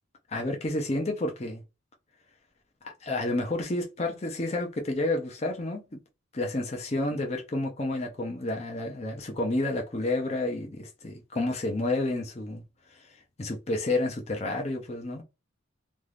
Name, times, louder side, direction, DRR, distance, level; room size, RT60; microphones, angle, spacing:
voice 1, 0.3-1.6 2.8-6.0 6.3-12.6 13.4-15.2, left 2 dB, 30° left, 0.6 m, -30 dB
2.6 x 2.4 x 3.3 m
head